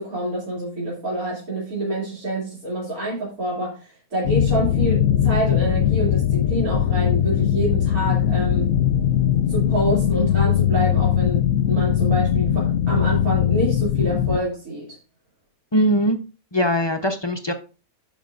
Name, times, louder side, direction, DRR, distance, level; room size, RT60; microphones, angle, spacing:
voice 1, 0.0-8.7 9.5-14.9, right 1 dB, 75° right, -6 dB, 3.3 m, -27 dB
sound 1, 4.2-14.4, left 10 dB, 70° left, 1.0 m, -20 dB
voice 2, 15.7-16.2 16.5-17.5, equal, 35° left, 5 dB, 0.4 m, -20 dB
14.5 x 5.5 x 2.5 m, 0.34 s
omnidirectional pair, 1.6 m